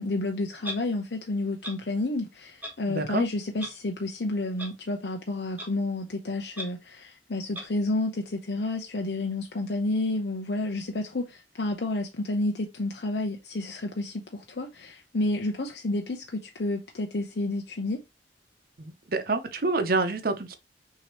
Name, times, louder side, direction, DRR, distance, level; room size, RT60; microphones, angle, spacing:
voice 1, 0.0-18.0, left 2 dB, 60° left, 0.7 m, -30 dB
Clock, 0.6-0.8 1.6-1.7 2.6-2.7 3.6-3.7 4.6-4.7 5.6-5.7 6.6-6.7 7.5-7.7, right 1 dB, 10° right, 1.1 m, -35 dB
voice 2, 2.9-3.2 18.8-20.5, right 3 dB, 55° right, 0.8 m, -27 dB
6.2 x 2.9 x 3.0 m
head